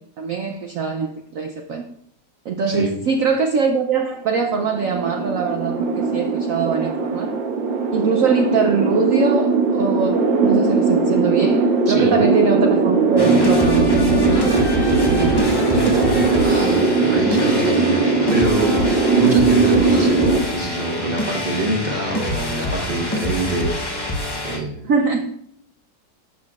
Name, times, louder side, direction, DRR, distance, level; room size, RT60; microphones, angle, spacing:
voice 1, 0.0-1.8 2.4-7.3 7.9-15.8 24.8-25.3, right 5 dB, 65° right, 4 dB, 0.8 m, -23 dB
voice 2, 2.7-3.0 11.9-12.1 16.4-24.0 24.4-24.8, right 1 dB, 30° right, 1 dB, 1.2 m, -25 dB
sound 1, 4.5-20.4, right 3 dB, 90° right, 1.8 m, -19 dB
sound 2, 13.2-24.6, left 1 dB, 25° left, 0.5 m, -26 dB
11.5 x 6.4 x 2.4 m, 0.73 s
omnidirectional pair, 2.0 m